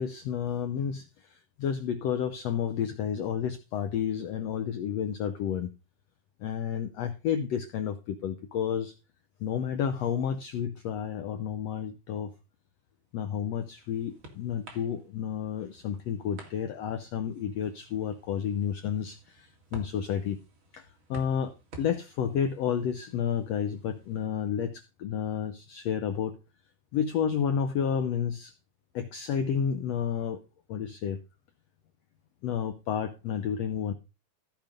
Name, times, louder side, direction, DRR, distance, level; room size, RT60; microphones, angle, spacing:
voice 1, 0.0-5.7 6.4-8.9 9.4-12.3 13.1-20.4 20.7-26.4 26.9-28.5 28.9-30.4 30.7-31.2 32.4-33.9, left 8 dB, 85° left, 8 dB, 1.4 m, -31 dB
sound 1, 13.2-24.3, right 3 dB, 40° right, 2.7 m, -52 dB
14.5 x 5.2 x 5.2 m, 0.29 s
omnidirectional pair, 4.0 m